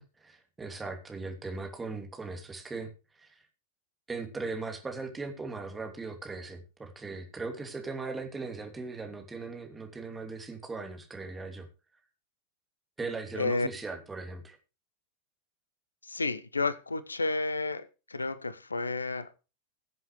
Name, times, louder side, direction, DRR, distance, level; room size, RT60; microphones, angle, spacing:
voice 1, 0.0-3.4 4.1-11.7 13.0-14.6, right 3 dB, 10° right, 4 dB, 3.0 m, -39 dB
voice 2, 13.4-13.7 16.1-19.3, left 3 dB, 80° left, 16 dB, 0.9 m, -31 dB
21.0 x 7.7 x 3.2 m, 0.31 s
figure-of-eight pair, 90°, 0 cm